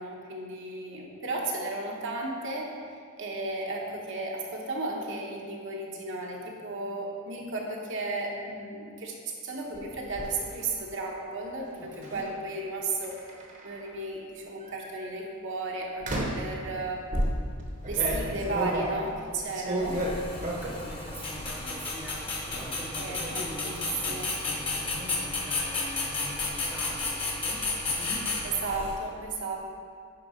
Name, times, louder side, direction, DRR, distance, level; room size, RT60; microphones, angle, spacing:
voice 1, 0.0-2.7 3.2-9.1 9.4-13.2 13.6-17.0 17.9-20.0 23.0-24.3 28.6-29.7, right 2 dB, 60° right, -1 dB, 1.1 m, -34 dB
sound 1, 9.7-10.3 12.0-12.3 13.0-13.9 14.6-14.9 16.0-16.5 17.1-20.9 21.2-21.8 22.0-22.6, right 1 dB, 35° right, 1.1 m, -32 dB
voice 2, 11.8-12.2 20.1-28.2, right 1 dB, 10° right, -4 dB, 0.7 m, -43 dB
sound 2, 19.8-29.0, left 3 dB, 25° left, 1.1 m, -32 dB
9.7 x 3.9 x 5.1 m, 2.2 s
head